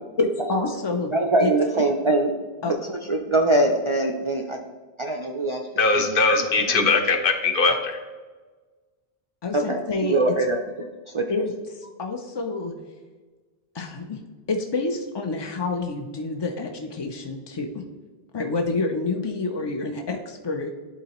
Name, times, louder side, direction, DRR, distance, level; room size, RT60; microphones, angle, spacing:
voice 1, 0.2-1.1 1.4-1.5 2.6-2.7 9.4-10.2 11.3-12.7 13.7-14.2 14.5-17.8 18.3-20.7, left 3 dB, 45° left, 3 dB, 0.3 m, -28 dB
voice 2, 1.1-2.3 2.6-4.6 5.0-5.7 6.0-6.2 6.8-6.9 9.5-11.3, right 2 dB, 50° right, 3 dB, 0.3 m, -23 dB
voice 3, 5.8-8.0, left 3 dB, 65° left, 5 dB, 0.9 m, -21 dB
11.0 x 3.9 x 2.9 m, 1.4 s
omnidirectional pair, 1.0 m